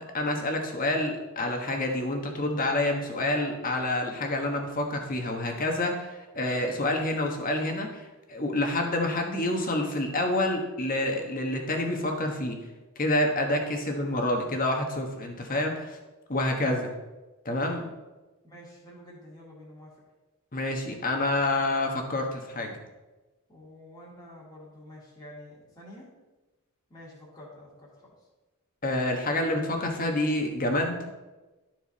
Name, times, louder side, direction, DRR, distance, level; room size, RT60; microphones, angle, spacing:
voice 1, 0.0-12.6 13.0-16.0 16.3-16.9 17.4-17.9 20.5-22.8 28.8-31.0, left 1 dB, 40° left, 2 dB, 1.3 m, -28 dB
voice 2, 18.4-19.9 23.5-26.1 26.9-28.1, left 1 dB, 20° left, -6 dB, 2.0 m, -48 dB
12.0 x 4.6 x 4.2 m, 1.1 s
head